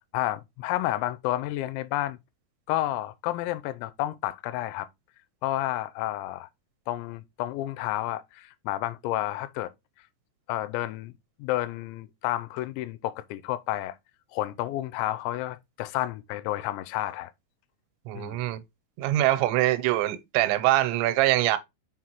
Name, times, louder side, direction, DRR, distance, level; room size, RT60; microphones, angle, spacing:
voice 1, 0.1-2.2 2.7-4.9 5.4-6.5 6.9-9.7 10.5-11.1 11.4-14.0 14.3-17.3 18.1-18.4, left 15 dB, 90° left, 2.9 m, -30 dB
voice 2, 18.1-18.6 19.0-21.6, right 15 dB, 85° right, 3.0 m, -23 dB
6.4 x 5.7 x 2.9 m
omnidirectional pair, 5.2 m